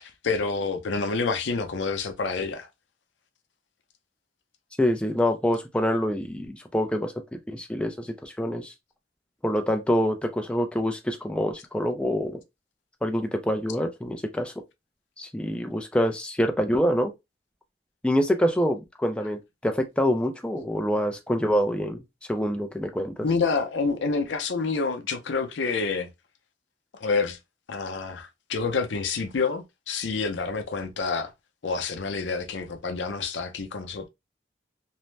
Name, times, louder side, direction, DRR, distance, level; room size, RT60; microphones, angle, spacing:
voice 1, 0.0-2.7 23.2-26.1 26.9-27.4 27.7-31.3 31.6-34.1, left 4 dB, 85° left, 0.5 m, -28 dB
voice 2, 4.8-8.7 9.4-12.4 13.0-14.5 15.2-17.1 18.0-22.0 22.3-23.3, equal, 5° left, 0.3 m, -26 dB
2.6 x 2.0 x 3.1 m
head